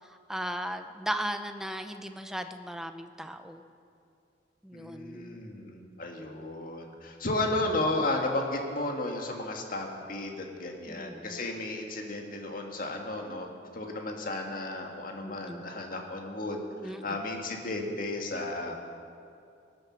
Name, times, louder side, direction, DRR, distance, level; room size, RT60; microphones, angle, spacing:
voice 1, 0.3-3.6 4.6-5.4 10.9-11.4 15.1-15.6 16.7-17.2, equal, 5° right, 7 dB, 0.6 m, -37 dB
voice 2, 4.7-13.5 13.7-18.7, left 2 dB, 50° left, 2 dB, 1.7 m, -33 dB
19.0 x 9.9 x 6.3 m, 2.5 s
head